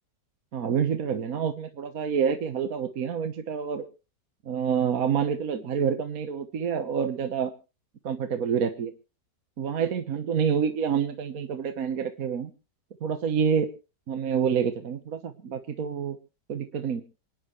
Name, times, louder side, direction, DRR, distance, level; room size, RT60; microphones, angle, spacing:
voice 1, 0.5-3.9 4.4-7.5 8.0-8.9 9.6-12.5 13.0-13.7 14.1-16.2 16.5-17.0, right 7 dB, 60° right, 8 dB, 1.5 m, -27 dB
28.0 x 10.5 x 3.1 m, 0.33 s
omnidirectional pair, 1.8 m